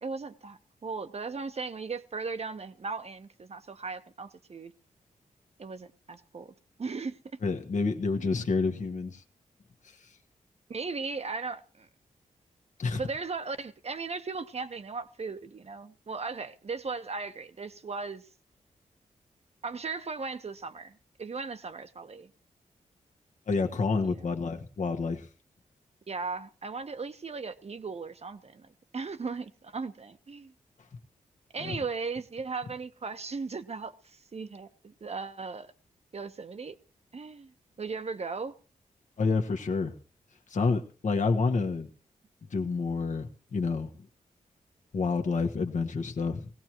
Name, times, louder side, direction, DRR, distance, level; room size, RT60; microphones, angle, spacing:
voice 1, 0.0-4.7 5.6-6.5 6.8-7.4 8.2-8.4 10.7-11.9 12.9-18.3 19.6-22.3 24.0-24.2 26.1-28.7 28.9-30.5 31.5-35.7 36.1-36.7 37.1-38.5, right 4 dB, 50° right, 1.2 m, -37 dB
voice 2, 7.4-9.2 9.8-9.9 12.8-13.0 23.5-25.3 31.6-31.8 39.2-39.9 40.5-41.9 42.5-43.9 44.9-46.5, left 4 dB, 60° left, 1.5 m, -29 dB
20.0 x 16.5 x 3.1 m
cardioid pair, 50°, 14 cm